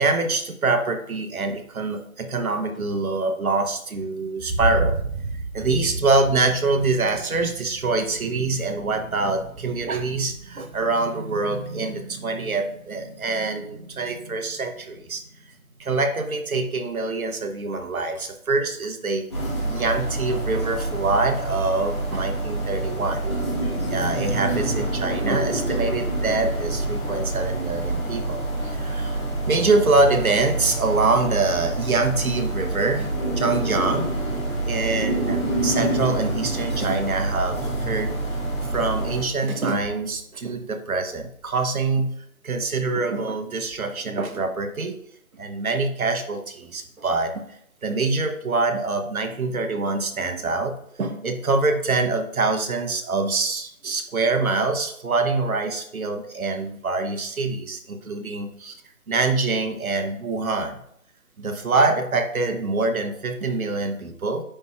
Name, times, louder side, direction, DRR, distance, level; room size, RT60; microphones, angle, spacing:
voice 1, 0.0-15.2 15.8-19.2 19.7-23.3 23.9-33.1 33.4-34.1 34.6-38.1 38.7-42.1 42.4-45.0 45.4-47.3 47.8-58.8 59.1-60.8 61.4-64.4, right 3 dB, 70° right, 5 dB, 1.1 m, -25 dB
sound 1, 19.3-39.2, right 2 dB, 20° left, 1.4 m, -27 dB
10.0 x 4.3 x 2.4 m, 0.70 s
figure-of-eight pair, 175°, 44 cm